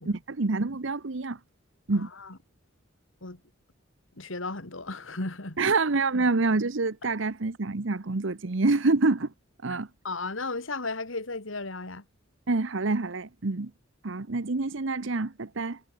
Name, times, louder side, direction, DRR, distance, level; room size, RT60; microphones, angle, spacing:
voice 1, 0.1-1.4 1.9-2.1 5.6-9.3 9.6-9.9 12.5-13.7 14.0-15.8, right 3 dB, 65° right, 1.0 m, -27 dB
voice 2, 1.9-2.4 3.2-3.4 4.2-5.6 9.7-12.0, left 3 dB, 75° left, 2.8 m, -35 dB
head